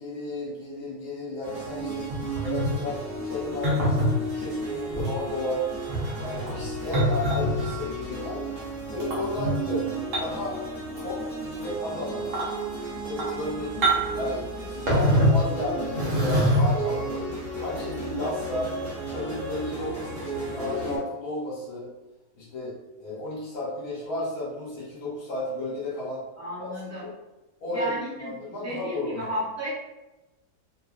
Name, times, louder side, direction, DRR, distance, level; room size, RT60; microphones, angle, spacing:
voice 1, 0.0-2.1 2.4-5.7 6.2-8.4 8.9-9.9 10.2-10.6 10.9-12.2 12.8-18.8 19.1-21.9 22.3-22.7 23.0-26.2 26.6-26.7 27.0-27.1 27.6-27.9 28.2-29.2, left 1 dB, 75° left, -6 dB, 1.3 m, -33 dB
sound 1, 1.4-21.0, right 2 dB, 40° right, 1.4 m, -34 dB
sound 2, 2.1-2.8 3.6-4.1 4.9-5.1 5.7-7.8 9.0-9.5 10.1-10.5 10.8-11.2 11.6-11.7 12.2-12.5 13.0-13.4 13.8-14.2 14.9-15.5 15.9-16.9 17.8-17.9, equal, 60° right, 1.1 m, -25 dB
voice 2, 26.4-27.0 27.7-28.3 28.6-29.7, equal, 10° right, -10 dB, 0.9 m, -33 dB
2.9 x 2.4 x 2.4 m, 1.0 s
omnidirectional pair, 1.6 m